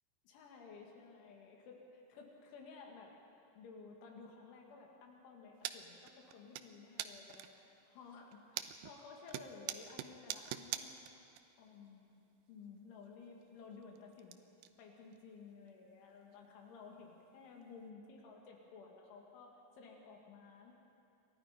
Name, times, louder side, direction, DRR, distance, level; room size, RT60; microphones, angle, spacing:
voice 1, 0.3-3.1 3.5-11.0 11.6-12.2 12.5-14.5 14.8-20.7, left 4 dB, 90° left, 0 dB, 4.7 m, -55 dB
sound 1, 5.6-5.8 6.1-6.7 7.0-7.6 8.1-9.0 9.3-11.4 11.7-11.8 13.0-13.1 13.4-14.3 14.6-14.7 15.1-15.2 15.7-15.8 16.3-16.4 17.6-17.7, right 12 dB, 80° right, 2.3 m, -43 dB
28.5 x 24.0 x 5.2 m, 2.7 s
omnidirectional pair, 5.3 m